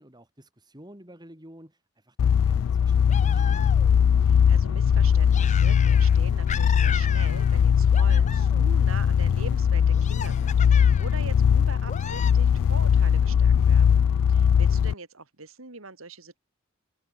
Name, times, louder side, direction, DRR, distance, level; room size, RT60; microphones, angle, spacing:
voice 1, 0.0-3.7 14.4-14.6, right 1 dB, 20° right, 7.1 m, -50 dB
sound 1, 2.2-14.9, left 7 dB, 80° left, 0.3 m, -20 dB
sound 2, 3.1-4.1 5.3-6.2 6.5-7.6 7.9-8.7 9.9-11.2 11.8-12.3, left 7 dB, 35° left, 0.8 m, -36 dB
voice 2, 4.2-14.0 14.3-16.4, right 3 dB, 80° right, 3.3 m, -42 dB
sound 3, 5.8-11.3, equal, 15° left, 7.6 m, -64 dB
head